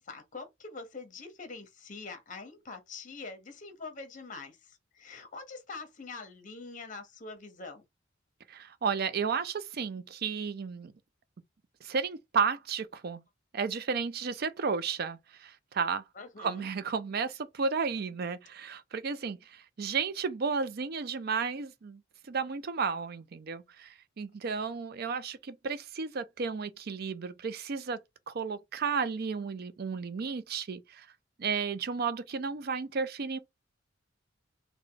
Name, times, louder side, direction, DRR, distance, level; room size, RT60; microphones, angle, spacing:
voice 1, 0.0-7.8 16.1-16.7, left 4 dB, 40° left, 0.9 m, -44 dB
voice 2, 8.5-10.9 11.8-13.2 13.5-16.0 16.4-28.0 28.3-31.1 31.4-33.4, right 5 dB, 50° right, 0.5 m, -33 dB
3.4 x 2.2 x 3.8 m
head